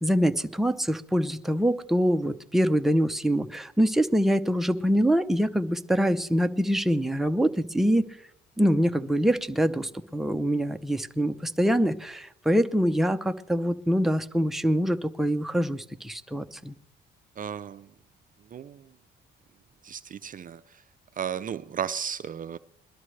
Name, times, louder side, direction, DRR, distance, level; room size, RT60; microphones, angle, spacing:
voice 1, 0.0-8.1 8.6-16.7, equal, ahead, 0.6 m, -24 dB
voice 2, 17.4-17.9 18.5-18.9 19.8-20.8 21.2-22.6, right 8 dB, 45° right, 0.5 m, -34 dB
21.5 x 12.5 x 3.2 m
cardioid pair, 90°, 20 cm